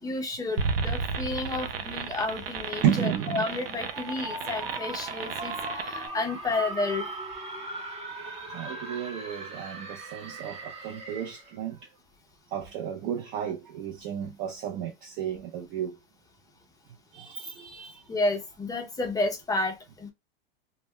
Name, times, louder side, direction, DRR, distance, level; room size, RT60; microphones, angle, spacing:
voice 1, 0.0-7.2 18.1-20.1, left 2 dB, 10° left, 0.5 m, -31 dB
sound 1, 0.6-6.1, right 5 dB, 80° right, 0.6 m, -33 dB
sound 2, 2.7-11.5, right 2 dB, 20° right, 0.8 m, -39 dB
voice 2, 2.8-3.5 7.6-7.8 8.5-11.9 12.5-16.0 17.1-18.1, right 9 dB, 40° right, 0.5 m, -32 dB
2.1 x 2.1 x 3.5 m
hypercardioid pair, 110°, 29 cm